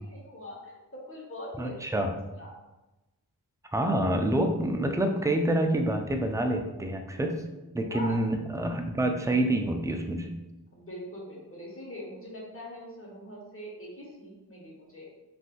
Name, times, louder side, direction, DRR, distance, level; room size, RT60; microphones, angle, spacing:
voice 1, 0.1-0.8 1.1-1.8 2.1-2.5 7.9-8.2 10.7-15.1, left 1 dB, 35° left, -3 dB, 1.1 m, -42 dB
voice 2, 1.6-2.1 3.7-7.4 7.7-10.3, right 1 dB, 10° right, 4 dB, 0.3 m, -27 dB
3.5 x 2.6 x 2.4 m, 1.0 s
wide cardioid pair, 45°, 40 cm